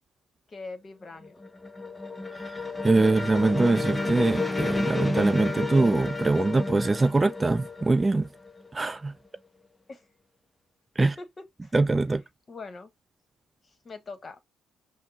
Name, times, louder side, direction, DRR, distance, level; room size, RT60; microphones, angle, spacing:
voice 1, 0.5-1.4 9.9-10.1 11.0-11.7 12.5-12.9 13.6-14.4, left 3 dB, 35° left, 1.1 m, -42 dB
sound 1, 1.1-8.8, left 3 dB, 15° left, 0.6 m, -31 dB
voice 2, 2.4-8.3 8.7-9.1 11.0-11.1 11.7-12.2, right 3 dB, 20° right, 0.4 m, -23 dB
5.7 x 2.0 x 2.7 m
supercardioid pair, 65°, 0 cm